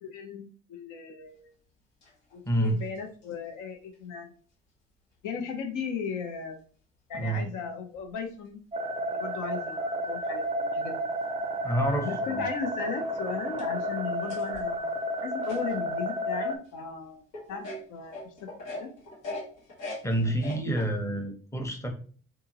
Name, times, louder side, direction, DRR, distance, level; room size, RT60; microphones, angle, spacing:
voice 1, 0.0-1.5 2.3-4.3 5.2-6.6 7.1-8.6 9.1-11.1 12.0-15.0 15.2-18.5 18.8-18.9, left 6 dB, 60° left, 4 dB, 0.7 m, -37 dB
sound 1, 2.0-3.3 3.9-4.0 6.0-6.1 7.2-7.3 8.0-8.1 11.4-11.5 12.3-12.4 12.9-13.0 13.4-16.0 16.6-16.7 17.3-20.8, left 2 dB, 80° left, 1.2 m, -42 dB
voice 2, 2.4-2.8 7.1-7.5 11.6-12.5 20.0-21.9, right 1 dB, 10° left, 3 dB, 0.8 m, -28 dB
sound 2, 8.7-16.6, equal, 20° right, 0.4 m, -31 dB
2.7 x 2.6 x 2.7 m, 0.41 s
hypercardioid pair, 50°, 34 cm